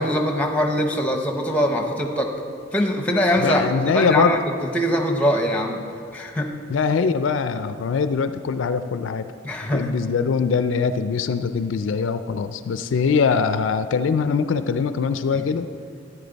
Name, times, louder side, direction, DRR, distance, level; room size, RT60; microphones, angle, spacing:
voice 1, 0.0-2.3 2.7-4.4 4.7-5.8 6.1-6.5 9.4-9.9, equal, 5° left, 3 dB, 0.9 m, -22 dB
voice 2, 3.4-4.4 6.7-9.3 9.7-15.7, left 5 dB, 70° left, 11 dB, 0.4 m, -22 dB
12.5 x 9.5 x 4.0 m, 2.4 s
head